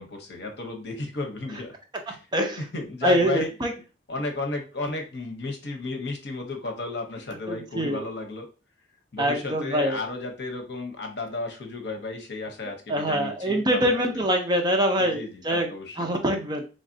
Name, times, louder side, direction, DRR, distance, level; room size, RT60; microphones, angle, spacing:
voice 1, 0.0-1.7 2.1-2.2 2.7-3.5 4.1-8.5 9.1-14.2 15.0-16.1, left 3 dB, 70° left, 3 dB, 0.9 m, -33 dB
voice 2, 2.3-2.6 3.0-3.7 7.5-8.0 9.2-10.0 12.9-15.7 16.0-16.7, right 1 dB, 25° right, 3 dB, 0.5 m, -24 dB
3.9 x 3.2 x 2.7 m, 0.32 s
head